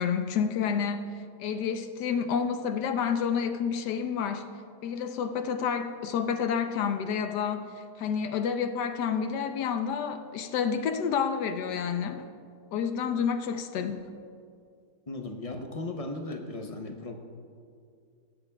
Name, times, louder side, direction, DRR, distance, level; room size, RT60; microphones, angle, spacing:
voice 1, 0.0-4.5 4.8-7.7 8.0-12.3 12.7-14.0, left 7 dB, 90° left, 8 dB, 1.3 m, -29 dB
voice 2, 15.1-17.2, left 2 dB, 45° left, 4 dB, 0.4 m, -36 dB
18.5 x 14.0 x 2.3 m, 2.3 s
omnidirectional pair, 1.7 m